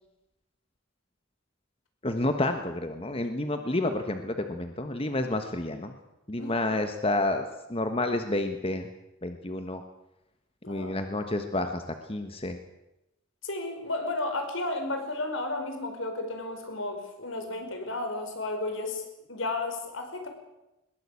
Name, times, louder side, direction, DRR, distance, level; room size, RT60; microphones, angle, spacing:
voice 1, 2.0-5.9 6.3-8.9 9.2-9.8 10.7-11.8 12.1-12.6, left 2 dB, 30° left, 7 dB, 1.4 m, -29 dB
voice 2, 6.4-6.7 10.6-11.0 13.4-19.0 19.3-20.3, left 2 dB, 70° left, 5 dB, 5.2 m, -33 dB
21.0 x 21.0 x 8.5 m, 0.93 s
head